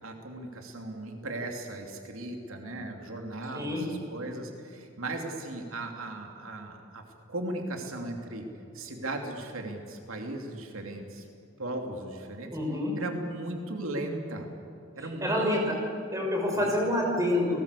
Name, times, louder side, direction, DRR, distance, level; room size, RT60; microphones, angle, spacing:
voice 1, 0.0-7.0 7.3-8.4 8.7-11.2 11.6-12.5 13.0-14.5 15.0-15.4 16.5-16.6, right 2 dB, 75° right, 3 dB, 2.8 m, -37 dB
voice 2, 12.5-12.9 15.0-15.8 16.1-17.6, left 1 dB, 15° right, 0 dB, 5.7 m, -27 dB
29.5 x 19.5 x 8.4 m, 2.8 s
head